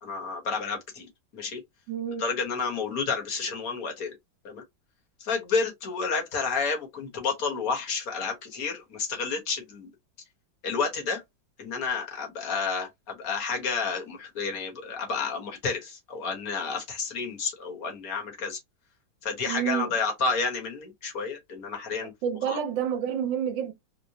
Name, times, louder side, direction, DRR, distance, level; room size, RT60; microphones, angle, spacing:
voice 1, 0.0-1.1 1.3-1.6 2.2-4.1 4.4-4.6 5.2-9.9 10.6-11.2 11.6-18.6 19.2-22.1 22.5-22.6, left 5 dB, 50° left, 1.5 m, -30 dB
voice 2, 1.9-2.2 19.5-19.9 22.0-23.7, right 8 dB, 75° right, 1.4 m, -29 dB
4.6 x 2.0 x 2.8 m
omnidirectional pair, 2.1 m